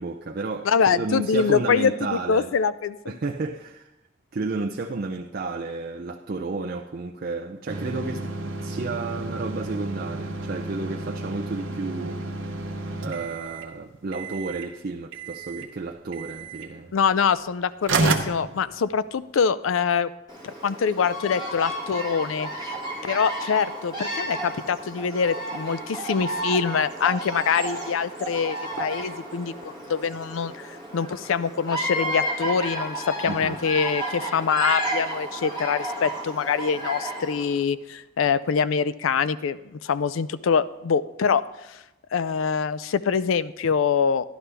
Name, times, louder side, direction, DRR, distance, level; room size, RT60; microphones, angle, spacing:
voice 1, 0.0-2.5 3.1-3.9 4.3-12.2 13.0-16.9 33.3-33.6, right 3 dB, 45° right, 0.4 m, -32 dB
voice 2, 0.6-3.2 16.9-20.1 20.4-22.8 23.0-41.4 41.7-41.8 42.1-44.2, left 6 dB, 85° left, 0.4 m, -24 dB
sound 1, 7.7-13.7 14.1-14.7 15.1-15.7 16.1-16.7 17.5-17.6 17.8-19.2, right 3 dB, 75° right, 0.9 m, -31 dB
Bird vocalization bird call bird song, 20.3-37.5, right 1 dB, 20° left, 2.0 m, -32 dB
12.5 x 11.0 x 3.4 m
head